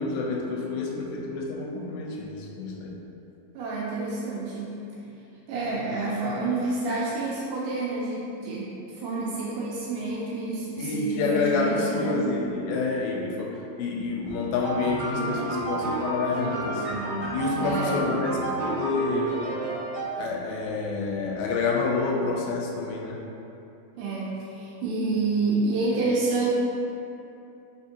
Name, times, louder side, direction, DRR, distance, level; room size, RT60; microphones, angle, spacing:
voice 1, 0.0-2.9 10.8-16.9 17.3-19.4 20.2-23.2, left 3 dB, 85° left, -1 dB, 2.3 m, -28 dB
voice 2, 3.6-4.8 5.5-12.2 17.6-18.0 23.9-26.5, right 3 dB, 80° right, -6 dB, 2.0 m, -28 dB
sound 1, 14.6-20.4, right 2 dB, 65° right, 1.6 m, -31 dB
5.3 x 3.5 x 2.8 m, 2.8 s
omnidirectional pair, 4.4 m